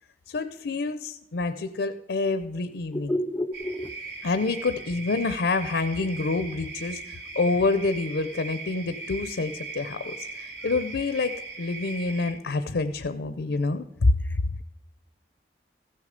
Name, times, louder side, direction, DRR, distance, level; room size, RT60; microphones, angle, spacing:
voice 1, 0.3-3.1 4.2-14.1, left 3 dB, 80° left, 0.5 m, -27 dB
voice 2, 2.9-4.0, left 1 dB, 10° left, 0.3 m, -29 dB
sound 1, 3.5-12.3, right 3 dB, 75° right, 2.5 m, -39 dB
15.0 x 6.6 x 5.1 m
head